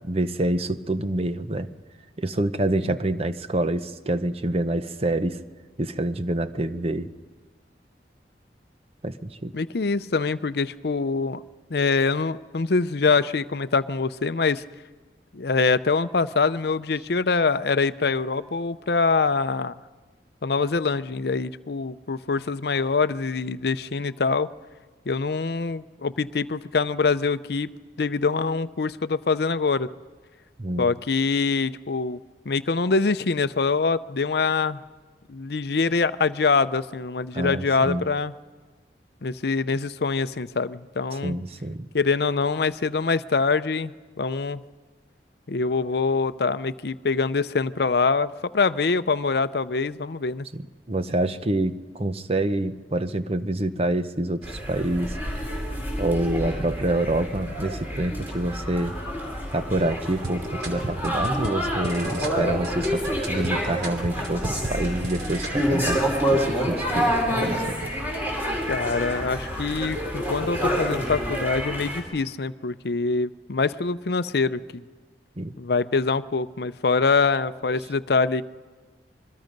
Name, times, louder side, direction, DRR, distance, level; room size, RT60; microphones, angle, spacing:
voice 1, 0.0-1.7 2.2-5.4 5.8-7.1 9.0-9.5 30.6-30.9 37.3-38.0 41.1-41.9 50.5-55.2 56.0-58.9 59.5-66.0 66.3-67.9 75.4-75.5, right 1 dB, 35° right, 11 dB, 0.8 m, -27 dB
voice 2, 9.5-11.4 11.7-14.6 15.3-19.7 20.4-24.5 25.1-27.7 28.0-29.9 30.8-32.2 32.5-34.8 35.3-38.3 39.2-41.4 41.9-43.9 44.2-44.6 45.5-50.5 68.7-74.8 75.6-78.4, left 4 dB, 60° left, 14 dB, 0.6 m, -24 dB
sound 1, 54.4-72.0, equal, 10° right, 4.4 m, -28 dB
sound 2, 60.2-65.6, right 2 dB, 65° right, 3.2 m, -36 dB
26.5 x 22.0 x 5.3 m, 1.4 s
head